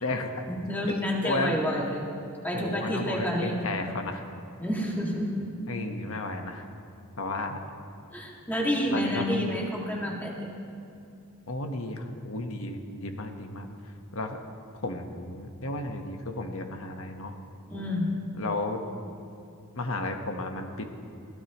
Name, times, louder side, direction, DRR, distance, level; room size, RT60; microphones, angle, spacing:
voice 1, 0.5-2.0 2.4-3.6 4.6-5.7 8.1-10.6 17.7-18.3, equal, 10° left, -3 dB, 2.2 m, -29 dB
voice 2, 1.2-1.8 2.5-4.2 5.7-6.6 7.2-7.6 8.9-9.3 11.5-13.7 14.1-14.4 14.7-17.4 18.4-18.8 19.7-20.9, left 2 dB, 65° left, 4 dB, 1.3 m, -33 dB
22.5 x 16.5 x 3.1 m, 2.6 s
head